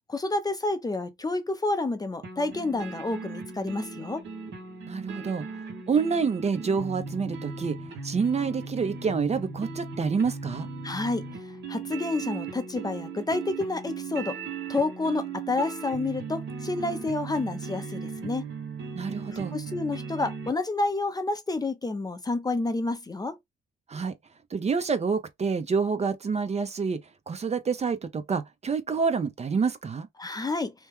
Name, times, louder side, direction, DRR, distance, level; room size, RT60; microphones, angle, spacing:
voice 1, 0.0-4.2 10.8-11.3 11.7-14.4 14.7-18.4 19.3-23.4 30.2-30.7, left 2 dB, 20° left, 0.5 m, -29 dB
sound 1, 2.2-20.5, right 5 dB, 65° right, 1.4 m, -38 dB
voice 2, 4.9-5.5 5.9-7.8 8.0-10.7 18.9-19.5 23.9-24.1 24.5-27.0 27.3-30.1, right 5 dB, 35° right, 0.6 m, -27 dB
3.0 x 2.1 x 3.4 m
cardioid pair, 90°, 20 cm